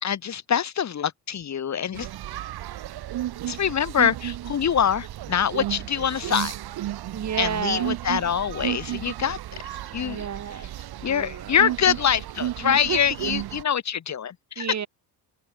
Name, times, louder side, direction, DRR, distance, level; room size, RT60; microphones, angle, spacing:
voice 1, 0.0-2.1 3.5-6.5 7.4-9.4 9.9-10.3 11.0-14.7, left 8 dB, 40° left, 2.8 m, -24 dB
sound 1, 1.9-13.6, right 13 dB, 65° right, 3.3 m, -33 dB
voice 2, 7.1-8.0 10.0-10.7 11.0-11.6 12.7-13.0 14.6-14.9, right 8 dB, 40° right, 5.5 m, -31 dB
open air
cardioid pair, 125°, 40 cm